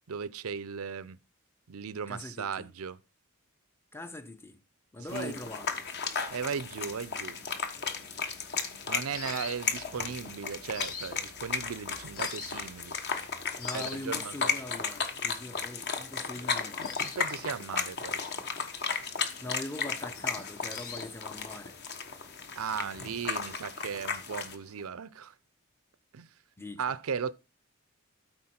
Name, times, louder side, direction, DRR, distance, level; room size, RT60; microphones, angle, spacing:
voice 1, 0.1-1.2 1.7-3.0 5.1-5.4 6.3-7.4 8.9-13.0 13.7-14.6 17.2-18.3 22.6-25.3 26.1-26.3 26.8-27.3, right 6 dB, 85° right, 0.6 m, -37 dB
voice 2, 2.1-2.7 3.9-4.6 4.9-5.9 13.6-17.0 19.4-21.8 26.6-26.8, left 2 dB, 10° left, 0.6 m, -42 dB
sound 1, 5.1-24.6, left 5 dB, 50° left, 1.2 m, -35 dB
sound 2, 7.3-24.9, left 6 dB, 80° left, 1.5 m, -49 dB
13.5 x 4.5 x 4.3 m
head